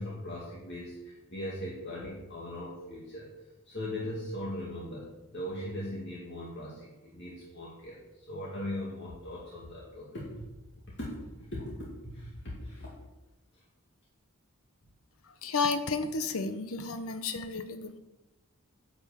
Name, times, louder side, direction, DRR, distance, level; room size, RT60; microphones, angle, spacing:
voice 1, 0.0-3.3 3.7-10.3 11.0-11.2 11.5-12.9, left 1 dB, 55° left, -5 dB, 2.4 m, -39 dB
voice 2, 15.4-18.0, left 4 dB, 85° left, 9 dB, 0.9 m, -32 dB
11.0 x 6.2 x 7.3 m, 1.0 s
head